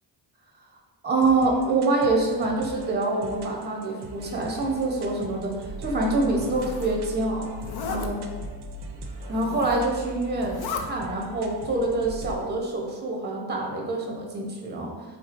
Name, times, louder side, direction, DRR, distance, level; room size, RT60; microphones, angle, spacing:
voice 1, 1.0-7.5 7.9-8.2 9.3-15.0, right 2 dB, 25° right, 0 dB, 0.7 m, -26 dB
sound 1, 1.1-12.4, right 1 dB, 60° right, 0.5 m, -39 dB
Zipper (clothing), 6.2-7.0 7.6-8.1 9.2-9.9 10.3-10.8, left 5 dB, 55° left, 0.5 m, -36 dB
3.4 x 3.1 x 2.5 m, 1.4 s
cardioid pair, 70°, 45 cm